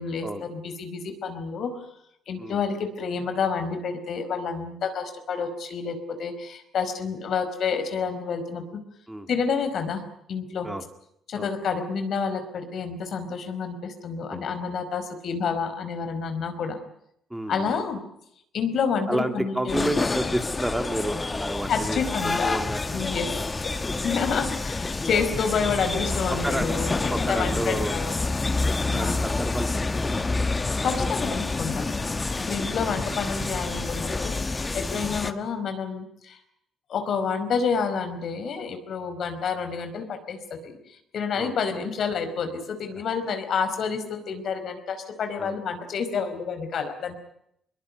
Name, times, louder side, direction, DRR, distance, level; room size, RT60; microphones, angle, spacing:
voice 1, 0.0-1.9 2.3-8.8 9.3-10.0 10.3-10.7 11.3-16.8 17.5-18.0 18.5-20.0 21.7-22.6 22.9-23.3 23.6-23.7 24.0-28.2 28.9-29.2 30.8-32.0 32.5-36.4 36.9-47.2, left 5 dB, 65° left, 8 dB, 5.1 m, -29 dB
voice 2, 17.3-17.7 19.1-23.1 23.3-23.4 26.4-26.7 27.1-28.0 28.9-30.9 32.4-32.5 34.9-35.1 41.3-41.5 45.4-45.5, right 1 dB, 5° right, 7 dB, 3.0 m, -31 dB
sound 1, 19.7-35.3, left 3 dB, 25° left, 1.8 m, -28 dB
22.5 x 22.5 x 9.6 m, 0.74 s
cardioid pair, 90°, 0 cm